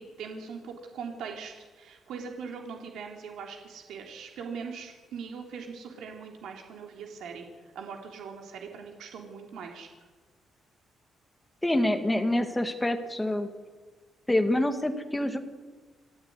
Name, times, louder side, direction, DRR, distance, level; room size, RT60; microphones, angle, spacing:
voice 1, 0.0-7.5 7.8-9.9, right 5 dB, 80° right, 2 dB, 3.5 m, -41 dB
voice 2, 11.6-13.5 14.3-15.4, left 1 dB, 5° left, 6 dB, 1.9 m, -26 dB
27.5 x 13.5 x 9.6 m, 1.4 s
cardioid pair, 170°, 0 cm